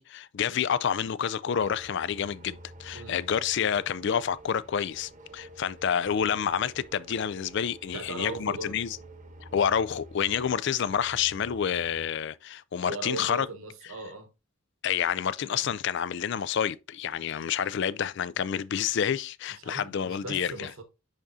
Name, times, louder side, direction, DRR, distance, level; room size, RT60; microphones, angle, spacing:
voice 1, 0.0-9.0 9.4-13.5 14.8-20.7, left 8 dB, 55° left, 0.3 m, -29 dB
sound 1, 1.6-12.1, right 1 dB, 35° right, 0.9 m, -49 dB
voice 2, 7.9-8.8 12.8-14.3 19.5-20.8, right 2 dB, 75° right, 1.2 m, -39 dB
10.5 x 3.6 x 2.7 m
head